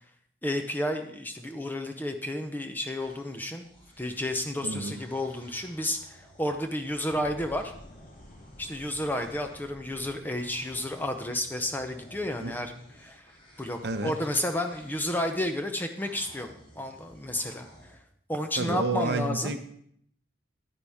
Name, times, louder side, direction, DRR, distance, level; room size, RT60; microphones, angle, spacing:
voice 1, 0.4-3.7 4.0-7.7 8.6-12.7 13.0-13.3 13.6-17.7 18.3-19.6, left 1 dB, 10° left, 6 dB, 0.6 m, -31 dB
sound 1, 2.8-9.8 10.2-18.0, equal, 25° left, 1.7 m, -55 dB
voice 2, 4.6-5.0 12.4-12.6 13.8-14.2 18.6-19.6, right 3 dB, 60° right, 8 dB, 0.7 m, -30 dB
Boom, 7.1-11.8 12.1-12.2 13.3-13.4, left 1 dB, 45° left, 0.9 m, -51 dB
9.9 x 9.5 x 3.5 m, 0.67 s
head